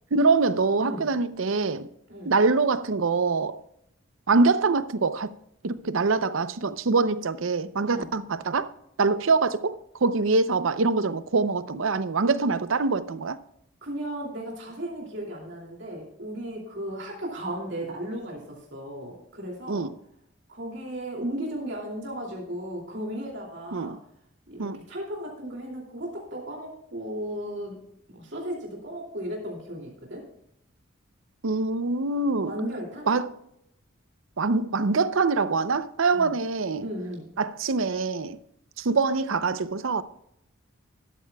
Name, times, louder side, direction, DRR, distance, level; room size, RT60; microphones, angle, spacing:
voice 1, 0.1-1.9 2.2-3.6 4.3-5.3 5.6-8.7 9.0-13.4 19.7-19.9 23.7-24.0 24.6-24.8 31.4-32.5 33.1-33.3 34.4-36.9 37.4-38.4 38.8-40.0, right 4 dB, 75° right, 0.6 m, -24 dB
voice 2, 0.8-1.1 2.1-2.3 7.8-8.1 13.8-19.9 20.5-24.0 24.5-27.8 28.1-30.2 32.4-33.1 36.1-36.3 36.8-37.3, right 1 dB, 60° right, 2.7 m, -35 dB
13.0 x 12.0 x 2.3 m
head